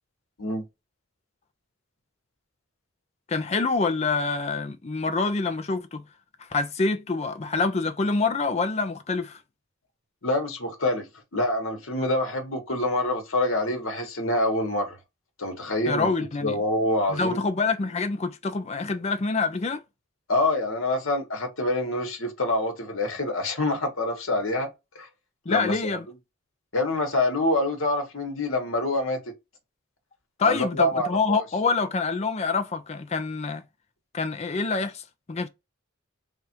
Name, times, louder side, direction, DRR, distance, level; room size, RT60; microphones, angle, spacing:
voice 1, 3.3-6.0 6.4-9.4 15.9-16.6 17.1-19.8 25.5-26.1 30.4-33.6 34.1-35.5, left 4 dB, 30° left, 0.4 m, -26 dB
voice 2, 10.2-11.1 11.3-15.0 15.4-16.1 16.4-17.4 20.3-24.7 25.0-25.1 25.5-26.0 26.7-29.2 30.4-31.4, left 1 dB, 70° left, 1.1 m, -26 dB
3.4 x 2.4 x 4.3 m
head